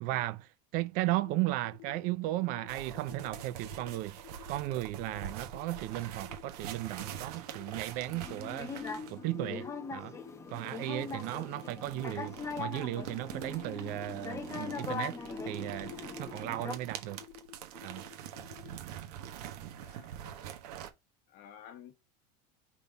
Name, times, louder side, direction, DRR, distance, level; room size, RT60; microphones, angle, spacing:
voice 1, 0.0-4.2 4.5-8.7 9.1-10.1 10.5-15.2 15.4-17.2 17.8-18.0, right 17 dB, 45° right, 0.4 m, -35 dB
sound 1, 1.0-18.8, left 15 dB, 65° left, 1.4 m, -52 dB
sound 2, 2.7-9.2 10.5-20.9, right 10 dB, 75° right, 1.3 m, -45 dB
sound 3, 8.1-16.7, left 4 dB, 15° left, 0.9 m, -41 dB
voice 2, 19.8-20.6 21.3-22.0, left 9 dB, 45° left, 1.3 m, -53 dB
5.3 x 4.1 x 5.2 m
supercardioid pair, 160°, 20 cm